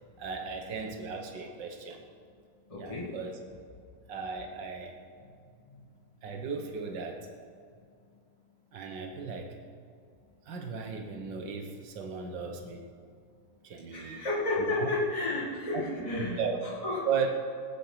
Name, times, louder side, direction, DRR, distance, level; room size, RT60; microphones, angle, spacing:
voice 1, 0.2-2.0 2.8-3.4 4.1-4.9 6.2-7.3 8.7-9.5 10.5-12.9 13.6-14.2 14.8-14.9 15.7-15.8 16.1-16.6 17.1-17.3, right 6 dB, 75° right, 4 dB, 2.0 m, -36 dB
voice 2, 2.7-3.2 5.7-5.8 13.9-17.2, left 2 dB, 20° left, -6 dB, 2.1 m, -32 dB
19.5 x 9.0 x 5.7 m, 2.2 s
omnidirectional pair, 2.0 m